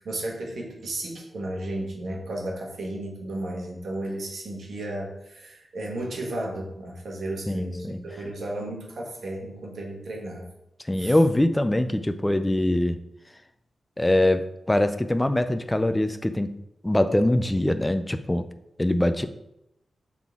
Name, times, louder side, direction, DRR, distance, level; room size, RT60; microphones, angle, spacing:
voice 1, 0.0-10.5 11.0-11.2, right 1 dB, 80° right, 0 dB, 1.4 m, -34 dB
voice 2, 7.5-8.0 10.9-13.0 14.0-16.5 16.8-18.5 18.8-19.3, left 1 dB, 15° left, 10 dB, 0.4 m, -23 dB
7.3 x 4.0 x 3.6 m, 0.83 s
wide cardioid pair, 105°, 0 cm